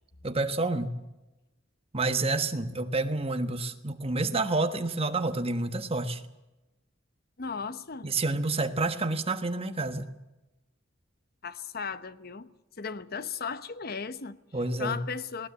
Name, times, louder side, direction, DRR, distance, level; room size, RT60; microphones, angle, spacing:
voice 1, 0.2-0.9 1.9-6.2 8.0-10.1 14.5-15.0, right 2 dB, 30° right, 1.4 m, -29 dB
voice 2, 7.4-8.1 11.4-12.5 12.8-14.4 14.8-15.5, left 5 dB, 50° left, 0.9 m, -36 dB
19.0 x 18.5 x 8.5 m
head